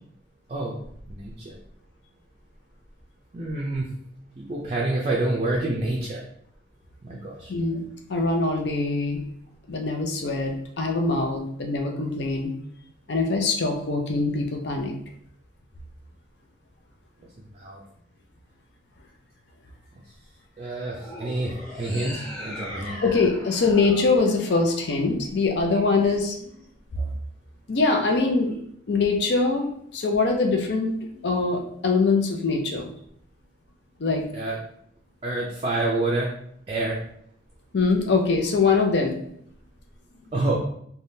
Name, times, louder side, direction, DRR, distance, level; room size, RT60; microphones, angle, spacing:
voice 1, 1.1-1.5 3.3-3.8 4.4-6.2 7.0-7.5 17.6-17.8 20.6-21.5 21.8-23.0 27.0-27.1 34.3-34.6 35.2-36.3 36.7-37.0 40.3-40.6, right 2 dB, 30° right, -3 dB, 0.4 m, -27 dB
voice 2, 7.5-9.2 9.7-10.5 10.8-12.5 13.1-14.9 23.0-26.5 27.7-28.5 28.9-29.7 29.9-32.9 34.0-34.2 37.7-39.1, left 3 dB, 60° left, 3 dB, 0.5 m, -23 dB
sound 1, 20.9-25.3, left 1 dB, ahead, 1.0 m, -40 dB
3.4 x 2.2 x 2.6 m, 0.68 s
head